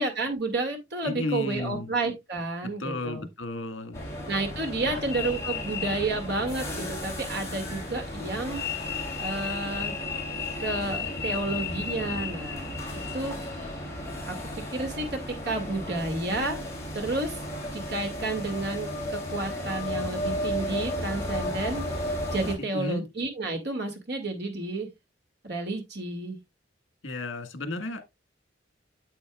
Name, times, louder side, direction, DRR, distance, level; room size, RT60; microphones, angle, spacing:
voice 1, 0.0-3.3 4.3-8.6 9.2-10.0 10.6-12.8 13.1-13.4 14.3-14.4 14.7-16.6 16.9-17.4 17.9-21.9 22.3-24.9 25.4-26.4, right 2 dB, 55° right, 2.2 m, -31 dB
voice 2, 1.0-1.9 2.6-4.0 4.8-5.0 22.6-23.1 27.0-28.0, left 2 dB, 75° left, 1.6 m, -33 dB
sound 1, 3.9-22.6, left 2 dB, 15° left, 3.0 m, -33 dB
8.4 x 7.9 x 2.4 m
head